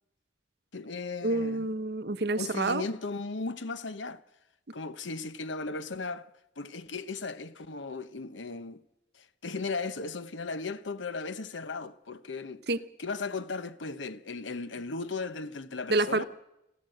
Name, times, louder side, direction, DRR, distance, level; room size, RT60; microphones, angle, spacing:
voice 1, 0.7-1.7 2.4-4.2 4.7-6.3 6.6-8.8 9.1-12.6 13.0-16.2, left 4 dB, 75° left, 1.0 m, -36 dB
voice 2, 1.2-2.8 12.7-12.8 15.9-16.2, right 2 dB, 55° right, 1.0 m, -28 dB
27.0 x 14.5 x 7.9 m
head